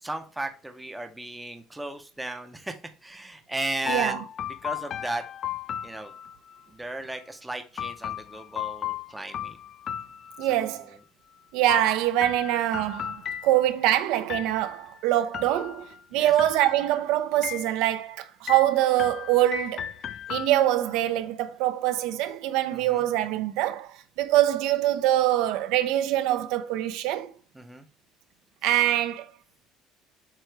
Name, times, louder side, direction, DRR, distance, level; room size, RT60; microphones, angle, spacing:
voice 1, 0.0-2.8 3.0-4.2 4.6-5.2 5.8-6.1 6.7-9.6 10.5-10.8 16.1-16.3 22.7-23.0 27.5-27.8, right 2 dB, 5° right, 0.6 m, -35 dB
sound 1, 3.9-6.6 7.8-10.8 11.7-13.9 14.3-14.9 15.3-16.0 16.4-17.0 17.4-18.1 18.5-20.9, left 10 dB, 35° left, 0.3 m, -36 dB
voice 2, 3.9-4.2 10.4-11.0 11.5-19.8 20.3-23.9 24.2-27.3 28.6-29.3, right 13 dB, 75° right, 0.7 m, -24 dB
7.7 x 2.9 x 4.6 m
cardioid pair, 175°, 0 cm